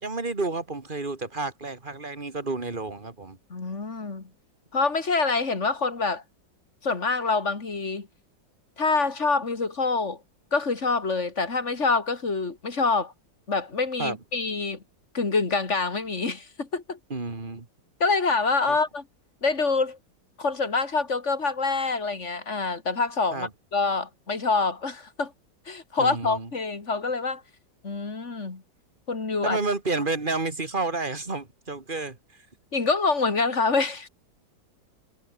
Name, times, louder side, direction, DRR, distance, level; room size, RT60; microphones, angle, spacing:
voice 1, 0.0-3.4 14.0-14.2 17.1-17.7 18.7-18.8 23.3-23.5 26.0-26.5 29.4-32.2, right 3 dB, 25° right, 2.7 m, -30 dB
voice 2, 3.5-4.3 4.7-6.2 6.8-8.1 8.8-10.2 10.5-13.1 13.5-14.8 15.1-17.0 18.0-19.0 19.4-20.0 20.4-25.3 25.7-27.4 27.8-28.6 29.1-29.6 32.7-34.1, left 4 dB, 40° left, 3.1 m, -26 dB
omnidirectional pair, 2.0 m